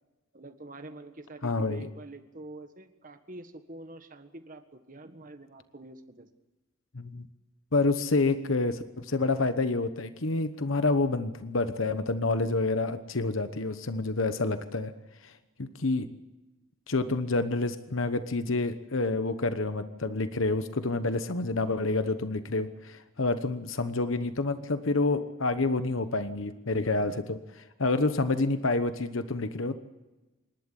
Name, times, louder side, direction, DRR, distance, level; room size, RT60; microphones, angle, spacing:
voice 1, 0.3-6.3, right 2 dB, 40° right, 8 dB, 1.6 m, -46 dB
voice 2, 1.4-1.9 6.9-7.3 7.7-14.9 15.2-15.3 15.6-16.1 16.9-29.8, left 3 dB, 70° left, 10 dB, 1.1 m, -28 dB
27.0 x 12.0 x 9.9 m, 1.1 s
head